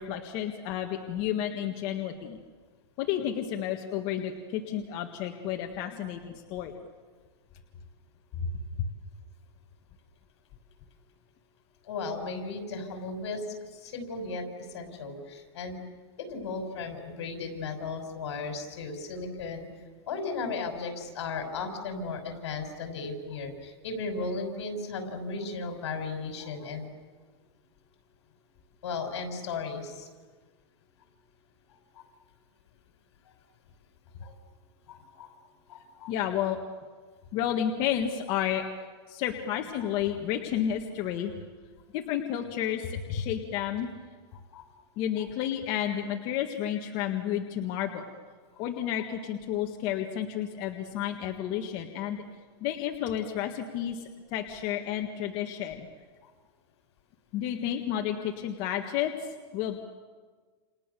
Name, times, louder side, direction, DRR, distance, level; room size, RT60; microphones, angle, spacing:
voice 1, 0.0-2.4 3.0-6.7 8.4-8.5 8.8-8.9 36.1-36.6 37.3-38.6 39.1-41.3 41.9-43.9 45.0-48.0 48.6-52.2 52.6-54.0 54.3-55.9 57.3-59.1 59.5-59.8, left 10 dB, 40° left, 3 dB, 1.8 m, -31 dB
voice 2, 11.8-15.8 16.2-19.7 20.1-26.9 28.8-30.1 31.9-32.1 34.2-34.3 34.9-35.3 35.7-36.1 44.3-44.7 56.2-56.3, left 4 dB, 75° left, 5 dB, 5.8 m, -36 dB
29.0 x 29.0 x 6.9 m, 1.5 s
supercardioid pair, 155°, 14 cm